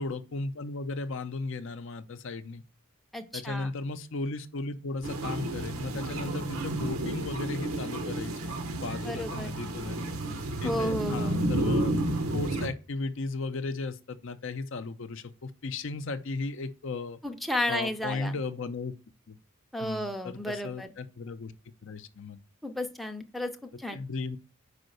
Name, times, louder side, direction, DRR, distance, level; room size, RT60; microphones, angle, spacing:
voice 1, 0.0-2.6 3.3-8.5 8.8-10.1 10.6-12.0 12.3-17.2 17.7-18.9 19.3-19.4 19.8-21.5 21.8-22.4 23.9-24.4, left 3 dB, 60° left, 0.6 m, -35 dB
voice 2, 3.1-3.7 9.0-9.5 10.6-11.4 17.2-18.3 19.7-20.9 22.6-24.0, left 1 dB, ahead, 0.5 m, -33 dB
sound 1, 5.0-12.7, right 1 dB, 80° right, 1.1 m, -31 dB
5.3 x 5.0 x 6.4 m
head